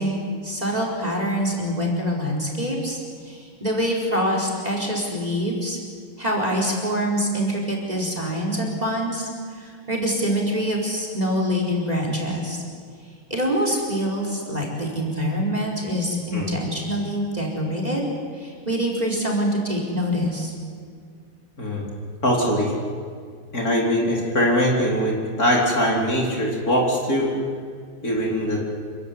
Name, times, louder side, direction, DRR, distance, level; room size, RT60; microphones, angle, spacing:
voice 1, 0.0-5.8 6.2-12.6 13.3-18.0 18.3-20.5, equal, 15° right, 0 dB, 4.8 m, -25 dB
voice 2, 22.2-22.7 23.5-27.3 28.0-28.6, equal, 40° left, -2 dB, 4.4 m, -22 dB
27.5 x 16.5 x 9.8 m, 2.1 s
omnidirectional pair, 2.3 m